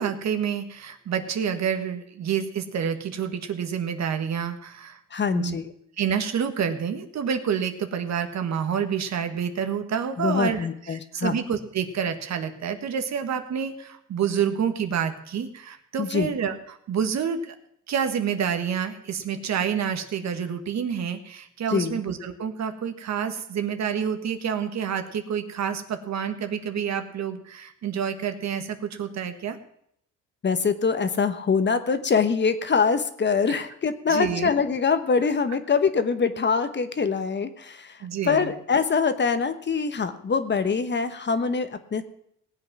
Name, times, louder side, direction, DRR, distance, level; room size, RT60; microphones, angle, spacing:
voice 1, 0.0-5.6 6.0-17.5 17.9-29.6 34.1-34.5 38.0-38.5, right 7 dB, 60° right, 8 dB, 1.6 m, -28 dB
voice 2, 5.1-5.7 10.2-11.4 16.0-16.3 21.7-22.0 30.4-42.0, left 5 dB, 35° left, 10 dB, 1.1 m, -24 dB
18.0 x 8.1 x 6.1 m, 0.71 s
cardioid pair, 90°, 30 cm